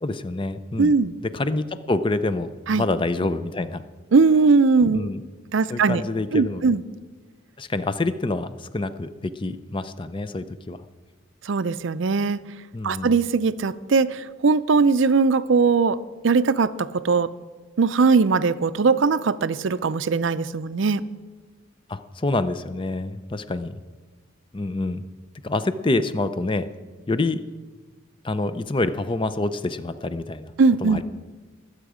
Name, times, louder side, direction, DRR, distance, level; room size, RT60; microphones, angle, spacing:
voice 1, 0.0-0.9 1.2-3.8 4.9-5.2 5.7-6.7 7.6-10.8 12.7-13.1 21.9-23.8 24.5-25.0 25.4-26.6 27.1-27.4 28.2-30.5 30.8-31.0, left 2 dB, 25° left, 12 dB, 0.5 m, -27 dB
voice 2, 0.8-1.1 2.7-2.9 4.1-5.1 5.5-6.0 6.3-6.8 11.4-12.4 12.8-16.0 16.2-17.3 17.8-21.0 30.6-31.0, right 4 dB, 65° right, 15 dB, 0.5 m, -20 dB
22.0 x 8.2 x 4.9 m, 1.3 s
head